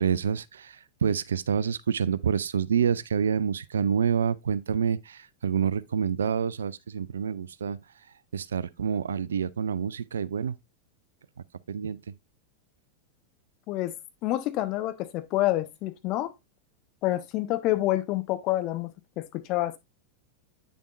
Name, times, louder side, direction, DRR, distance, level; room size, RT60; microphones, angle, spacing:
voice 1, 0.0-7.8 8.3-10.6 11.7-12.0, right 7 dB, 65° right, 0.4 m, -27 dB
voice 2, 14.2-16.3 17.0-19.8, left 16 dB, 40° left, 1.0 m, -28 dB
8.7 x 6.9 x 2.5 m
figure-of-eight pair, 90°, 0 cm